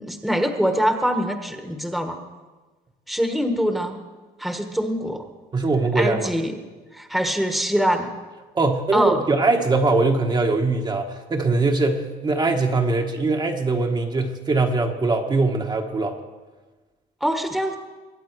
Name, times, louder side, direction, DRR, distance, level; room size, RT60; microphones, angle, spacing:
voice 1, 0.0-2.2 3.1-4.0 4.4-5.3 5.9-6.6 6.9-8.1 8.9-9.2 17.2-17.8, equal, ahead, 5 dB, 1.3 m, -23 dB
voice 2, 5.5-6.3 8.5-16.2, right 3 dB, 25° right, 2 dB, 1.2 m, -21 dB
22.0 x 8.9 x 4.7 m, 1.3 s
cardioid pair, 110°, 17 cm